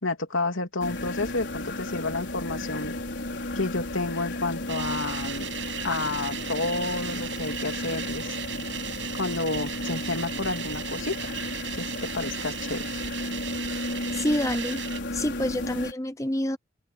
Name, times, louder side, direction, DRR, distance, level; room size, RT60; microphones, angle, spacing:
voice 1, 0.0-2.9 3.5-5.5 5.8-8.3 9.1-11.3 11.7-12.9 15.6-15.7, left 2 dB, 85° left, 3.1 m, -30 dB
sound 1, 0.8-15.9, left 1 dB, 60° left, 5.5 m, -34 dB
sound 2, 4.7-15.0, right 10 dB, 65° right, 7.6 m, -37 dB
voice 2, 14.1-14.8 15.1-16.6, left 1 dB, 15° left, 0.7 m, -27 dB
head